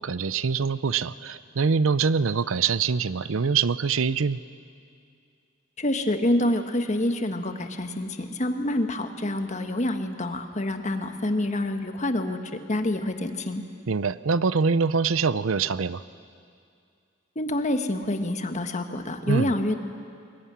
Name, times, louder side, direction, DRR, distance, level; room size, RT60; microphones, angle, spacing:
voice 1, 0.0-4.4 13.9-16.0 19.3-19.5, right 5 dB, 85° right, 16 dB, 0.6 m, -24 dB
voice 2, 5.8-12.4 12.7-13.6 17.3-19.8, left 1 dB, 35° left, 6 dB, 1.5 m, -27 dB
22.0 x 21.0 x 10.0 m, 2.3 s
head